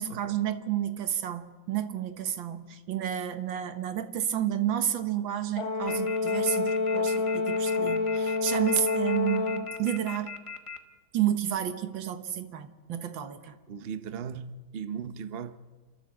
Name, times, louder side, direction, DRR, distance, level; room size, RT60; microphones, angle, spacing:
voice 1, 0.0-10.4 11.1-13.6, right 11 dB, 75° right, 1.9 m, -31 dB
Brass instrument, 5.6-9.8, left 4 dB, 85° left, 2.3 m, -28 dB
sound 1, 5.9-10.8, left 6 dB, 20° left, 0.9 m, -39 dB
voice 2, 13.7-15.6, right 7 dB, 55° right, 0.7 m, -37 dB
27.5 x 13.0 x 7.6 m
omnidirectional pair, 2.1 m